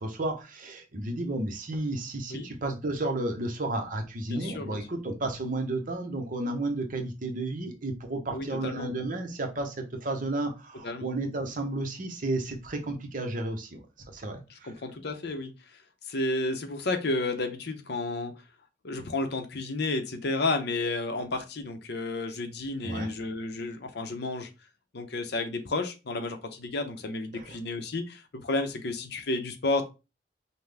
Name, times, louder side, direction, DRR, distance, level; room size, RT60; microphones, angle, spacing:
voice 1, 0.0-9.8 10.0-13.8 14.1-14.7 22.8-23.1 27.3-27.6, right 2 dB, 50° right, 4 dB, 0.9 m, -32 dB
voice 2, 4.3-4.8 8.3-8.9 10.8-11.1 14.5-15.5 16.1-18.3 18.8-24.5 24.9-29.9, left 2 dB, 65° left, 7 dB, 0.7 m, -31 dB
5.6 x 2.2 x 3.4 m, 0.27 s
head